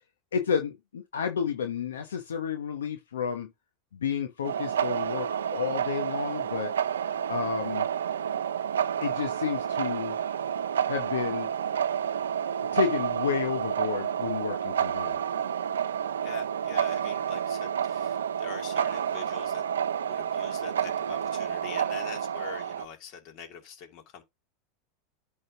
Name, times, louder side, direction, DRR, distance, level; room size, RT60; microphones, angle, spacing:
voice 1, 0.3-3.5 3.9-6.7 7.3-7.9 9.0-10.2 10.9-11.5 12.7-15.2, left 7 dB, 85° left, 1.0 m, -31 dB
sound 1, 4.4-22.9, right 8 dB, 90° right, 0.6 m, -30 dB
voice 2, 16.2-19.6 20.0-24.2, left 7 dB, 55° left, 2.8 m, -44 dB
10.5 x 3.7 x 3.8 m
hypercardioid pair, 100°, 0 cm